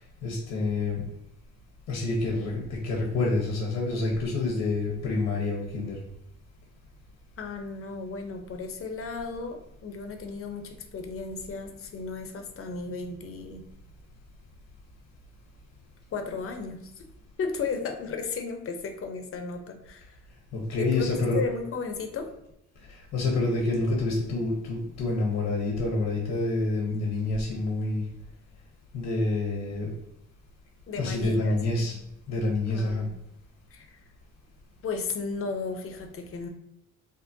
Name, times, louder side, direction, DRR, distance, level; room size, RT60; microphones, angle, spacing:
voice 1, 0.2-1.0 1.9-6.0 20.5-21.4 23.1-28.0 28.9-29.9 31.0-31.9 32.3-33.1, left 2 dB, 80° left, -3 dB, 0.9 m, -27 dB
voice 2, 7.4-13.6 16.1-16.9 17.4-20.2 20.8-22.3 30.9-32.0 32.7-33.1 33.7-34.0 34.8-36.5, left 4 dB, 45° left, 5 dB, 0.6 m, -35 dB
3.6 x 2.1 x 2.6 m, 0.81 s
cardioid pair, 90°, 30 cm